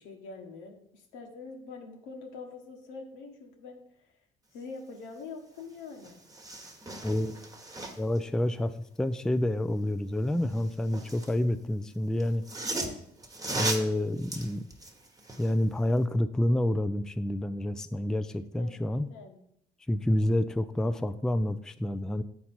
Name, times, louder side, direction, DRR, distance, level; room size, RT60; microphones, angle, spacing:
voice 1, 0.0-4.1 4.5-6.2 12.7-13.0 18.2-19.4, left 4 dB, 80° left, 3 dB, 1.4 m, -45 dB
sound 1, 5.6-5.7 5.9-8.2 10.3-11.4 12.2-15.6 16.0-16.1, right 2 dB, 20° right, 1.2 m, -37 dB
voice 2, 7.0-7.4 8.0-8.7 9.0-12.4 13.5-14.6 15.4-19.1 19.9-22.2, left 1 dB, 5° left, 11 dB, 0.4 m, -28 dB
8.3 x 4.3 x 4.3 m, 0.73 s
supercardioid pair, 70°, 20 cm